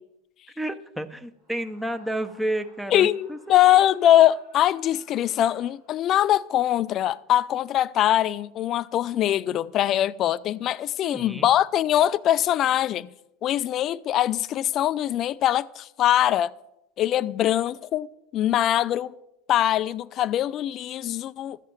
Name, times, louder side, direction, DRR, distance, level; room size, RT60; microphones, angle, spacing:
voice 1, 0.6-3.7 11.0-11.5, right 1 dB, 5° right, 0.8 m, -31 dB
Screaming, 1.4-6.2, right 1 dB, 80° right, 5.1 m, -58 dB
voice 2, 2.9-13.1 13.4-16.5 17.0-18.1 18.3-19.1 19.5-21.6, left 12 dB, 45° left, 0.4 m, -22 dB
13.0 x 7.5 x 5.9 m
hypercardioid pair, 90°, 0 cm